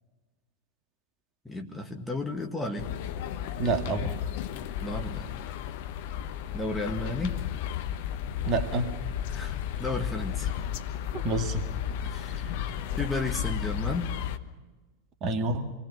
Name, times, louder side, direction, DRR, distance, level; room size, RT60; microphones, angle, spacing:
voice 1, 1.5-2.9 4.8-5.3 6.5-7.4 9.3-10.6 12.0-12.7 13.0-14.1, left 2 dB, 5° left, 2 dB, 1.9 m, -33 dB
sound 1, 2.8-14.4, left 10 dB, 50° left, 1.1 m, -33 dB
voice 2, 3.6-4.1 8.5-8.9 11.1-11.7 15.2-15.7, right 3 dB, 30° right, 6 dB, 2.0 m, -28 dB
27.0 x 20.5 x 5.7 m, 1.3 s
figure-of-eight pair, 90°, 0 cm